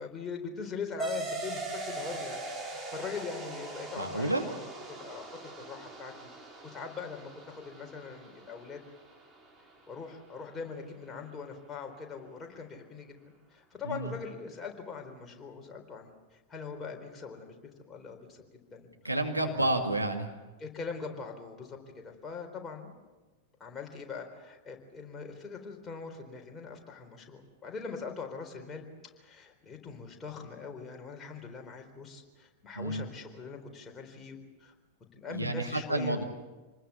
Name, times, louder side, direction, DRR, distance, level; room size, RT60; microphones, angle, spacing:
voice 1, 0.0-4.5 4.9-6.1 6.6-8.8 9.9-13.1 13.5-16.1 16.5-17.6 17.9-18.4 18.7-18.9 19.5-19.9 20.6-22.9 23.6-28.9 29.2-34.7 35.1-36.2, left 5 dB, 20° left, 2 dB, 4.1 m, -42 dB
sound 1, 1.0-10.0, right 2 dB, 15° right, 3.9 m, -41 dB
voice 2, 4.0-4.5 13.9-14.1 19.0-20.3 32.8-33.1 35.3-36.2, right 2 dB, 85° right, 3 dB, 2.3 m, -30 dB
27.0 x 20.5 x 7.1 m, 1.2 s
figure-of-eight pair, 90°, 0 cm